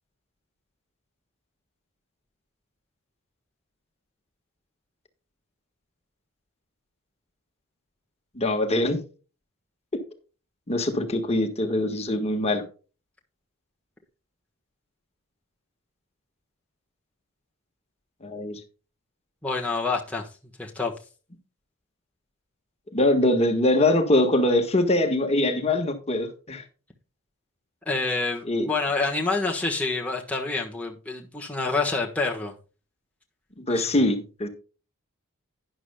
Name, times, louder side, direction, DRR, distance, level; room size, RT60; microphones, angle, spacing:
voice 1, 8.3-9.0 10.7-12.6 18.2-18.6 22.9-26.6 28.4-28.7 33.6-34.5, left 1 dB, 30° left, 1.5 m, -23 dB
voice 2, 19.4-20.3 20.6-20.9 27.8-32.5 33.7-34.0, left 3 dB, 5° left, 1.3 m, -27 dB
12.0 x 10.0 x 2.3 m
head